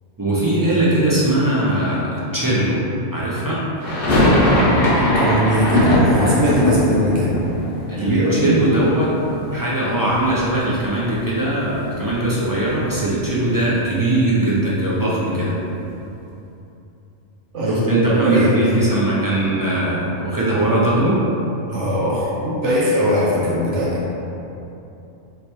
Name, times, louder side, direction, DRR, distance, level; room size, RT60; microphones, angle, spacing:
voice 1, 0.2-2.9 3.1-3.6 7.9-9.1 9.5-15.6 17.7-21.2, right 1 dB, 20° right, -8 dB, 0.6 m, -20 dB
sound 1, 3.8-9.8 10.0-10.9 11.1-11.2 11.5-13.7, left 1 dB, 55° left, 1.0 m, -20 dB
voice 2, 4.9-7.3 8.0-8.5 15.2-15.5 17.5-18.5 21.7-24.0, equal, 85° right, -7 dB, 1.3 m, -20 dB
3.4 x 3.2 x 4.4 m, 2.9 s
omnidirectional pair, 1.2 m